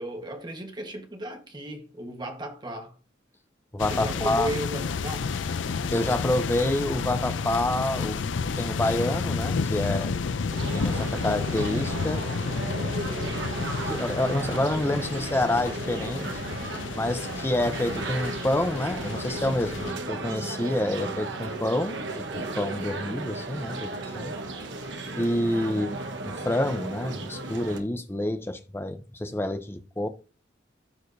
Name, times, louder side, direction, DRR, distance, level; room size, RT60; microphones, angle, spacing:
voice 1, 0.0-2.9 3.9-5.3, right 1 dB, 25° right, 1.2 m, -35 dB
voice 2, 3.7-4.5 5.9-8.2 8.6-10.1 10.7-12.2 13.9-16.3 16.9-22.0 22.3-24.3 25.2-26.0 26.3-30.1, left 1 dB, 15° left, 0.7 m, -28 dB
sound 1, 3.8-19.9, left 5 dB, 80° left, 0.5 m, -31 dB
sound 2, 10.5-27.8, right 2 dB, 70° right, 1.2 m, -35 dB
14.0 x 4.8 x 2.7 m
head